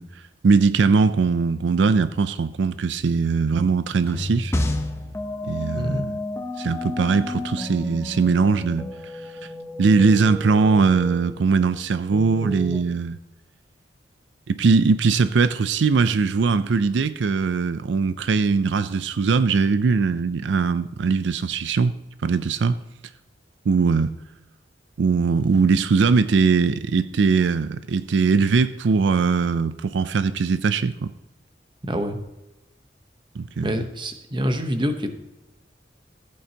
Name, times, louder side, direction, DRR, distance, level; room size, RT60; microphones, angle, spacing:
voice 1, 0.0-4.5 5.4-6.1 6.6-9.5 9.8-13.2 14.5-22.0 22.2-22.8 23.7-24.1 25.0-31.1 33.4-33.9, right 4 dB, 80° right, 0.4 m, -21 dB
sound 1, 4.1-12.8, left 1 dB, 15° left, 0.8 m, -31 dB
voice 2, 5.7-6.1 31.8-32.2 33.6-35.2, equal, 25° right, 1.0 m, -26 dB
14.5 x 8.6 x 2.9 m
head